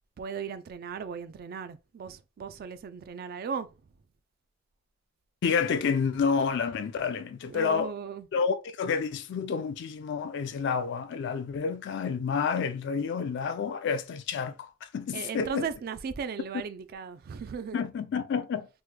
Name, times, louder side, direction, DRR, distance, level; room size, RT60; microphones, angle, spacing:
voice 1, 0.2-3.7 7.5-8.3 15.1-17.8, right 6 dB, 50° right, 0.3 m, -37 dB
voice 2, 5.4-7.9 8.3-15.7 17.7-18.8, left 6 dB, 60° left, 0.3 m, -29 dB
3.0 x 2.1 x 3.2 m
head